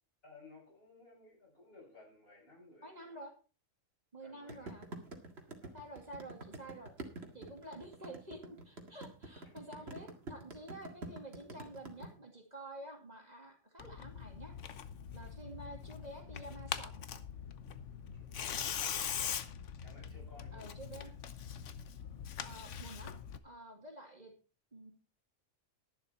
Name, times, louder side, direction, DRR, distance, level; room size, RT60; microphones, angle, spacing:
voice 1, 0.2-3.2 4.2-4.8 5.6-5.8 9.7-10.0 18.1-19.5 19.8-20.7 21.0-21.1, left 3 dB, 45° left, -2 dB, 7.0 m, -59 dB
voice 2, 2.8-3.3 4.1-4.9 5.7-6.9 7.3-14.5 15.1-16.9 20.5-21.1 22.4-23.1 23.4-24.3 24.7-24.9, right 1 dB, 30° right, 1 dB, 2.4 m, -49 dB
sound 1, 4.5-12.1, right 2 dB, 55° right, 2.2 m, -46 dB
Tearing, 13.8-23.4, left 8 dB, 70° left, 1.2 m, -42 dB
11.5 x 11.0 x 4.2 m, 0.34 s
omnidirectional pair, 1.3 m